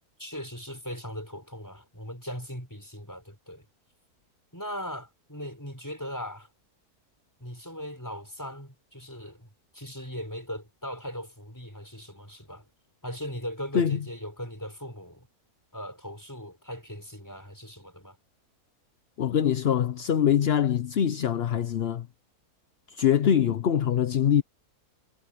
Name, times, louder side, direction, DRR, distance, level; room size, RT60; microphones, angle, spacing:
voice 1, 0.2-3.7 4.5-6.5 7.4-9.5 9.7-12.6 13.0-15.3 15.7-18.2, equal, 10° left, 6.1 m, -39 dB
voice 2, 19.2-22.1 22.9-24.4, left 9 dB, 50° left, 0.8 m, -23 dB
omnidirectional pair, 1.6 m